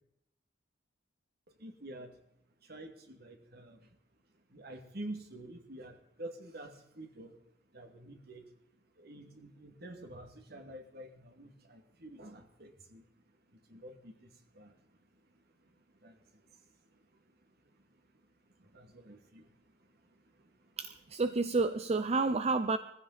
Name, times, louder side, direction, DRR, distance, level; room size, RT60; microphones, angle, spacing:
voice 1, 1.6-2.1 2.7-3.8 4.5-7.3 7.7-8.4 9.0-13.0 13.7-14.1 14.6-14.7 16.0-16.1 18.7-19.4, right 1 dB, 60° right, 4 dB, 2.5 m, -47 dB
voice 2, 20.8-22.8, right 3 dB, 35° right, 10 dB, 0.6 m, -30 dB
20.5 x 15.0 x 4.2 m, 0.81 s
head